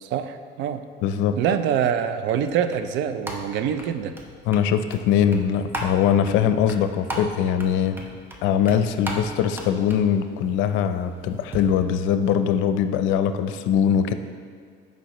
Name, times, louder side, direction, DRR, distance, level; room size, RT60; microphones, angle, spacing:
voice 1, 0.0-0.8 1.4-4.2, right 8 dB, 75° right, 10 dB, 0.6 m, -25 dB
voice 2, 1.0-1.4 4.5-8.0 8.4-14.1, left 8 dB, 90° left, 9 dB, 0.6 m, -22 dB
sound 1, 1.9-11.6, right 1 dB, 10° right, 0.9 m, -38 dB
15.5 x 5.3 x 3.0 m, 2.1 s
cardioid pair, 145°, 19 cm